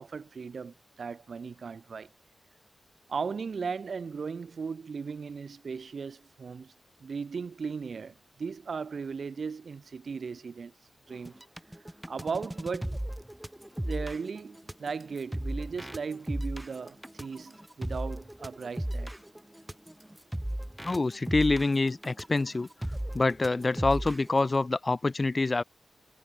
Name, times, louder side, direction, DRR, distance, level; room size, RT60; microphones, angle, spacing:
voice 1, 0.0-2.1 3.1-6.7 7.0-10.7 11.1-11.4 12.1-13.0 13.8-19.1, right 5 dB, 60° right, 1.8 m, -37 dB
sound 1, 11.1-24.4, right 1 dB, 5° right, 1.3 m, -36 dB
voice 2, 20.8-22.7 23.1-25.6, left 3 dB, 30° left, 0.6 m, -26 dB
wide cardioid pair, 165°, 0 cm